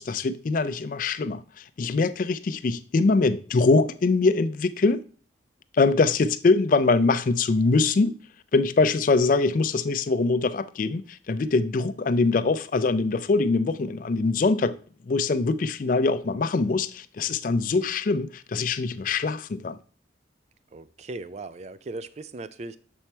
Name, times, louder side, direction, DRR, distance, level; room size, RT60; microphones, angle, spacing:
voice 1, 0.0-5.0 5.7-8.1 8.5-14.8 15.1-19.8, left 3 dB, 45° left, 0.4 m, -23 dB
voice 2, 20.7-22.8, right 2 dB, 35° right, 0.3 m, -38 dB
6.9 x 4.6 x 4.3 m
head